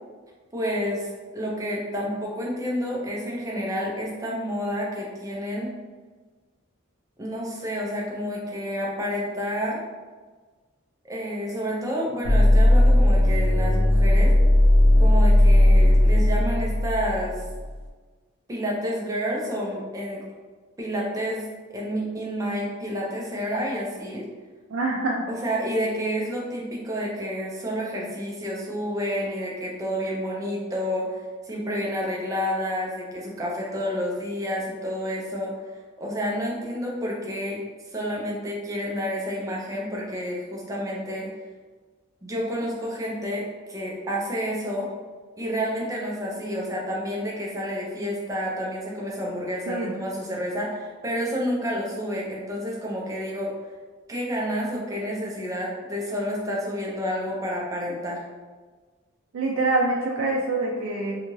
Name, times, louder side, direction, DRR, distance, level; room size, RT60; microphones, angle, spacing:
voice 1, 0.5-1.1 1.3-5.7 7.2-9.8 11.1-14.3 15.0-17.4 18.5-20.2 20.8-24.2 25.3-31.2 31.4-35.5 36.0-37.6 37.9-41.3 42.2-44.9 45.4-53.5 54.1-58.2, equal, 15° right, -3 dB, 0.5 m, -29 dB
sound 1, 12.2-17.7, left 1 dB, 55° left, 0.4 m, -17 dB
voice 2, 24.7-25.3 49.7-49.9 59.3-61.2, right 2 dB, 75° right, -3 dB, 0.3 m, -25 dB
2.7 x 2.4 x 3.0 m, 1.4 s
head